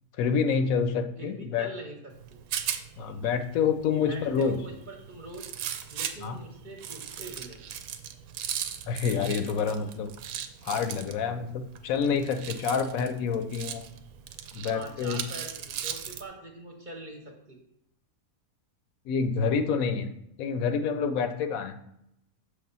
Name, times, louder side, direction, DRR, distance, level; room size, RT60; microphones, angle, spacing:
voice 1, 0.2-1.7 3.0-4.6 6.2-6.4 8.9-10.1 10.6-13.8 14.5-15.2 19.1-20.1 20.4-21.8, left 6 dB, 75° left, 8 dB, 1.0 m, -27 dB
voice 2, 1.2-2.4 4.0-5.4 5.9-7.6 14.7-17.6, right 2 dB, 40° right, 1 dB, 0.9 m, -43 dB
Rattle, 2.1-16.3, right 9 dB, 80° right, 1.0 m, -39 dB
6.8 x 3.3 x 5.4 m, 0.78 s
omnidirectional pair, 1.5 m